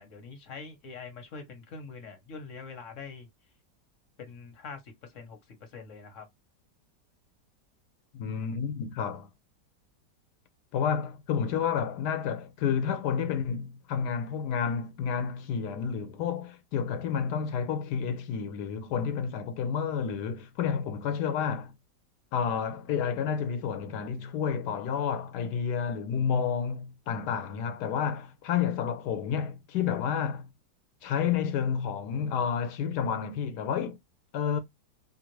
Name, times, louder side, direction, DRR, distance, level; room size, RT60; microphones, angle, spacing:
voice 1, 0.0-3.3 4.2-6.3, left 5 dB, 50° left, 1.2 m, -44 dB
voice 2, 8.1-9.3 10.7-21.7 22.3-30.5 31.0-34.0 34.3-34.6, left 7 dB, 75° left, 1.2 m, -30 dB
2.8 x 2.5 x 3.0 m
omnidirectional pair, 1.8 m